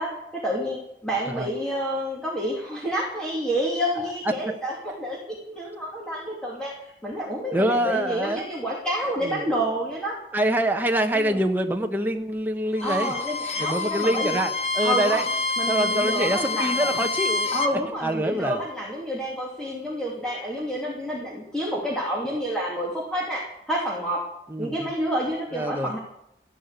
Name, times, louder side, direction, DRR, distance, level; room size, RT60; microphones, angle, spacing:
voice 1, 0.0-5.2 5.5-10.2 11.1-11.4 12.8-14.4 14.8-15.2 15.6-17.0 17.5-24.2 24.6-26.0, equal, 5° left, -5 dB, 2.7 m, -29 dB
voice 2, 7.2-8.4 9.2-9.5 10.3-13.1 13.6-15.2 15.7-18.6 24.5-24.9 25.5-25.9, right 1 dB, 10° right, 4 dB, 1.2 m, -25 dB
Bowed string instrument, 12.7-17.8, left 3 dB, 35° left, 1.2 m, -27 dB
14.5 x 11.0 x 8.3 m, 0.78 s
head